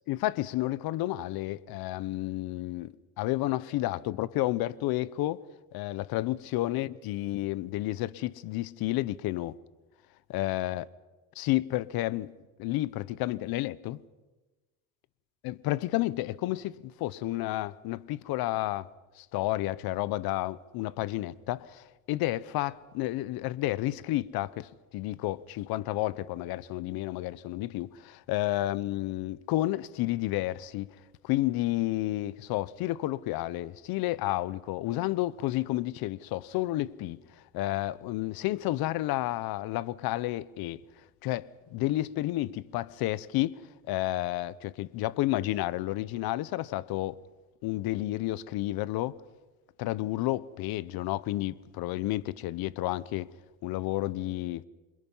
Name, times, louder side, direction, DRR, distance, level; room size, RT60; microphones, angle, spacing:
voice 1, 0.1-5.4 5.7-9.6 10.3-10.8 11.4-12.3 12.6-14.0 15.4-18.9 19.2-30.9 31.2-37.2 37.5-40.8 41.2-47.1 47.6-49.2 49.8-53.3 53.6-54.6, left 16 dB, 65° left, 0.9 m, -31 dB
28.0 x 25.5 x 5.6 m
cardioid pair, 140°, 39 cm